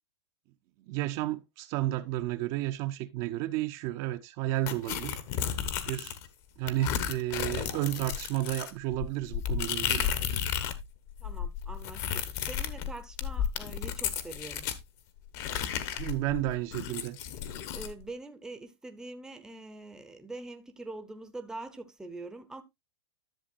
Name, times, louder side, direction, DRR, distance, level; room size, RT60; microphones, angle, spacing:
voice 1, 0.9-5.6 5.9-6.2 6.6-10.1 16.0-17.2, right 15 dB, 35° right, 0.6 m, -32 dB
sound 1, 4.7-6.3 6.7-10.8 11.1-14.8 15.3-17.9, left 9 dB, 45° left, 1.1 m, -33 dB
voice 2, 11.2-14.7 17.7-22.6, right 2 dB, 5° right, 0.8 m, -44 dB
11.5 x 6.9 x 2.5 m
hypercardioid pair, 140°, 14 cm